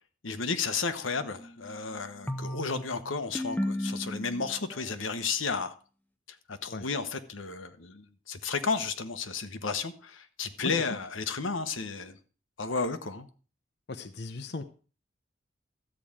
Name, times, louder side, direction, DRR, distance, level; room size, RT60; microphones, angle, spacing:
voice 1, 0.2-5.7 6.5-12.2 12.6-13.3, left 4 dB, 90° left, 1.2 m, -33 dB
sound 1, 1.2-4.8, left 1 dB, 10° left, 0.8 m, -36 dB
voice 2, 13.9-14.6, left 3 dB, 55° left, 0.8 m, -37 dB
13.0 x 5.0 x 8.8 m
head